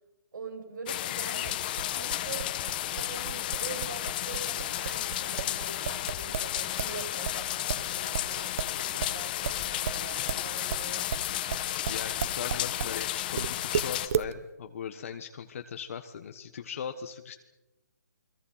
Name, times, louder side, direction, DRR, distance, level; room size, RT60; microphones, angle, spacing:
voice 1, 0.3-2.6 2.9-11.2, right 4 dB, 75° right, 3 dB, 7.9 m, -44 dB
sound 1, 0.9-14.1, left 13 dB, 25° left, 1.4 m, -33 dB
sound 2, 1.4-7.0 7.2-13.0 13.4-14.3, right 8 dB, 45° right, 0.9 m, -34 dB
voice 2, 11.9-17.4, left 7 dB, 45° left, 7 dB, 1.4 m, -39 dB
29.0 x 22.0 x 5.8 m, 1.1 s
hypercardioid pair, 165°, 10 cm